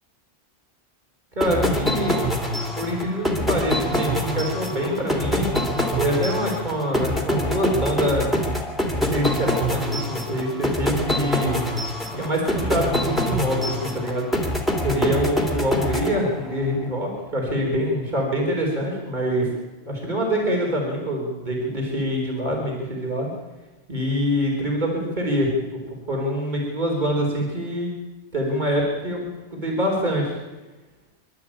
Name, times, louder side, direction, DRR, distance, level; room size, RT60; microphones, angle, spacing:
voice 1, 1.3-2.3 2.7-5.5 6.0-8.4 8.9-11.6 12.1-14.2 14.8-19.5 19.9-23.3 23.9-25.5 26.1-27.9 28.3-30.3, equal, 45° right, -1 dB, 4.5 m, -25 dB
sound 1, 1.4-16.7, equal, ahead, 2.9 m, -25 dB
25.0 x 12.5 x 8.6 m, 1.1 s
omnidirectional pair, 1.1 m